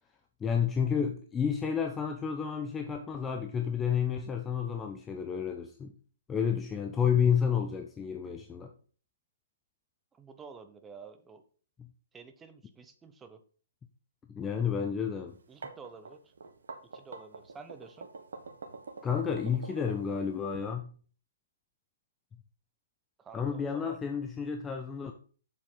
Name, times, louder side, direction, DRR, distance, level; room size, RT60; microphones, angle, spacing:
voice 1, 0.4-5.9 6.3-8.7 14.3-15.3 19.0-20.9 23.3-25.1, left 7 dB, 15° left, 0.7 m, -30 dB
voice 2, 10.1-11.4 12.1-13.4 15.5-16.3 16.9-18.1 23.2-24.0, right 5 dB, 10° right, 0.9 m, -50 dB
sound 1, 15.3-20.6, right 4 dB, 60° right, 1.6 m, -45 dB
7.3 x 7.3 x 4.0 m
figure-of-eight pair, 125°, 0 cm